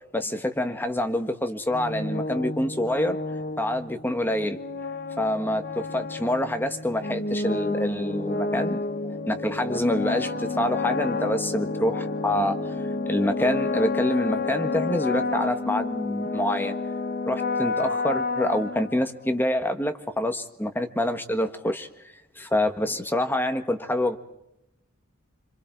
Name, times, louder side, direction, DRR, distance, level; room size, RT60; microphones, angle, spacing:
voice 1, 0.1-3.2 3.6-4.6 5.2-8.8 9.3-12.6 13.1-16.7 17.2-24.2, left 1 dB, 10° left, 7 dB, 1.5 m, -26 dB
sound 1, 1.7-19.4, left 3 dB, 50° left, 1.3 m, -30 dB
26.5 x 26.0 x 4.6 m, 0.86 s
head